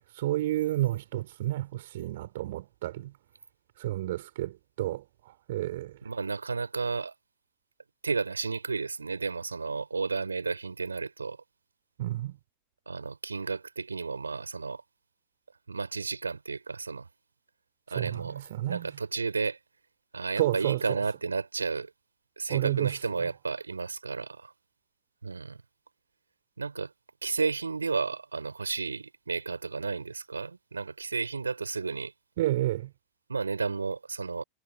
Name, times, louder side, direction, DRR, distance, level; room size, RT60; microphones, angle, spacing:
voice 1, 0.0-3.1 3.8-5.0 5.5-5.9 12.0-12.3 17.9-18.9 20.4-21.0 22.5-22.9 32.4-32.9, right 15 dB, 55° right, 4.6 m, -30 dB
voice 2, 6.0-7.1 8.0-11.4 12.9-14.8 15.7-17.1 17.9-19.6 20.1-21.9 22.4-24.5 25.2-25.6 26.6-26.9 27.2-32.1 33.3-34.4, right 4 dB, 75° right, 5.4 m, -32 dB
figure-of-eight pair, 90°, 0 cm